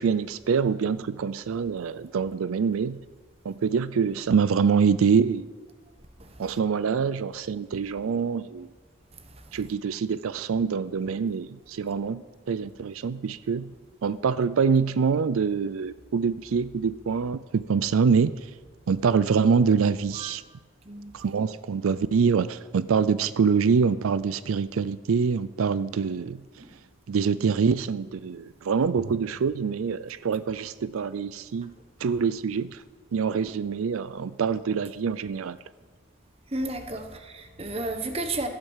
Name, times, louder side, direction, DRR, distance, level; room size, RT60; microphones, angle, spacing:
voice 1, 0.0-3.0 3.4-5.5 6.4-8.7 9.5-13.7 14.0-18.5 18.9-20.4 21.1-26.4 27.1-31.7 32.0-32.8 33.1-35.6, right 6 dB, 85° right, 0.4 m, -25 dB
voice 2, 36.5-38.5, right 2 dB, 30° right, 1.1 m, -33 dB
14.0 x 8.7 x 7.3 m
head